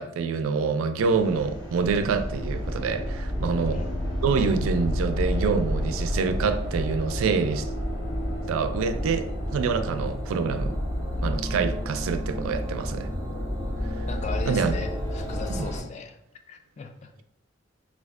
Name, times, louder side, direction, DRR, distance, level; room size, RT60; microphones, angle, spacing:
voice 1, 0.0-3.8 4.2-7.7 8.5-10.8 11.2-13.1 13.8-14.1 14.5-14.7 15.6-15.7, right 5 dB, 85° right, 9 dB, 0.3 m, -26 dB
sound 1, 1.0-15.8, equal, 70° left, 1.1 m, -30 dB
voice 2, 3.5-4.0 14.1-16.2 16.5-17.2, left 4 dB, 35° left, 5 dB, 0.3 m, -38 dB
4.1 x 2.3 x 2.3 m, 0.80 s
head